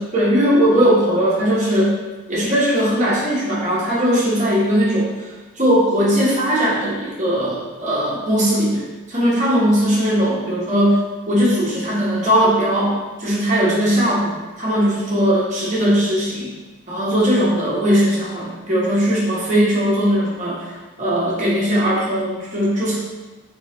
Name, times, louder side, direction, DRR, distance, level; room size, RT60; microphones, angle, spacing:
voice 1, 0.0-1.9 2.3-5.1 5.6-11.0 11.3-16.5 16.9-20.7 21.0-23.0, equal, 35° right, -7 dB, 1.2 m, -19 dB
3.8 x 3.6 x 3.1 m, 1.2 s
head